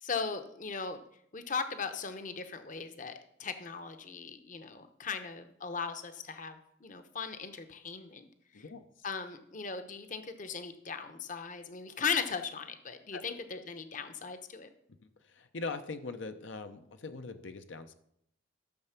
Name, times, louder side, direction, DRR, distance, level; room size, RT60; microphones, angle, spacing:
voice 1, 0.0-1.0 1.3-8.3 8.5-8.7 9.0-14.7, left 5 dB, 40° left, 9 dB, 0.8 m, -38 dB
voice 2, 15.2-17.9, left 3 dB, 70° left, 8 dB, 0.7 m, -41 dB
13.5 x 6.7 x 5.8 m, 0.72 s
head